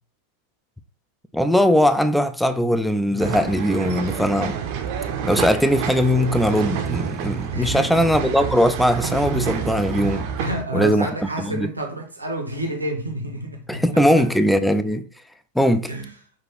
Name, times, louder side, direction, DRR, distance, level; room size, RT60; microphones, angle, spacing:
voice 1, 1.3-4.6 5.2-10.3 10.7-11.1 11.4-11.7 13.7-15.1 15.6-15.9, equal, ahead, 0.3 m, -20 dB
sound 1, 3.2-10.6, right 8 dB, 45° right, 0.6 m, -28 dB
voice 2, 7.5-8.0 10.4-14.3 15.9-16.1, right 1 dB, 80° right, 0.8 m, -29 dB
5.9 x 2.5 x 3.0 m
figure-of-eight pair, 90°, 0 cm